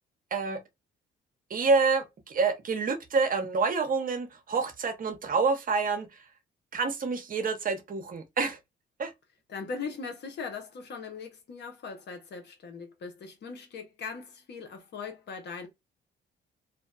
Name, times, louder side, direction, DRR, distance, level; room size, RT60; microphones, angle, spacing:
voice 1, 0.3-0.6 1.5-6.2 6.7-8.6 9.0-9.1, right 4 dB, 45° right, 0.8 m, -27 dB
voice 2, 9.5-15.7, left 5 dB, 60° left, 0.9 m, -40 dB
2.7 x 2.2 x 2.3 m
cardioid pair, 90°, 20 cm